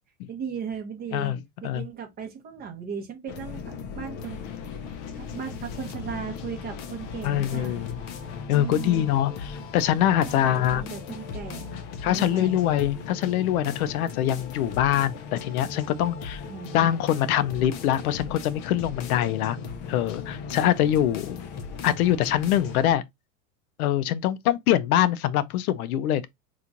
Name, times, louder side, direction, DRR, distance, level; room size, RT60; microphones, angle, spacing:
voice 1, 0.3-4.4 5.1-7.8 8.5-9.1 10.2-11.8 12.1-12.6 16.5-16.8, right 6 dB, 20° right, 0.7 m, -37 dB
sound 1, 3.3-23.0, left 6 dB, 30° left, 0.5 m, -38 dB
voice 2, 7.2-8.0 8.5-10.8 12.0-16.4 16.7-19.6 19.9-21.4 21.8-23.0 23.8-26.3, left 12 dB, 75° left, 0.6 m, -24 dB
3.0 x 2.4 x 3.8 m
supercardioid pair, 140°, 44 cm